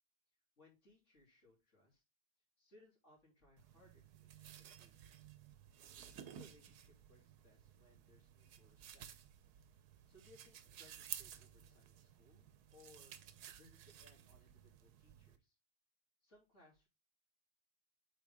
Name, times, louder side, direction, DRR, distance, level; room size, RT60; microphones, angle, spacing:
voice 1, 0.6-2.0 2.6-5.3 6.1-9.1 10.1-13.2 13.5-15.6 16.2-16.9, left 2 dB, 45° left, -2 dB, 3.5 m, -67 dB
sound 1, 3.6-15.4, right 10 dB, 75° right, 1.3 m, -55 dB
8.4 x 4.1 x 3.5 m, 0.25 s
omnidirectional pair, 1.7 m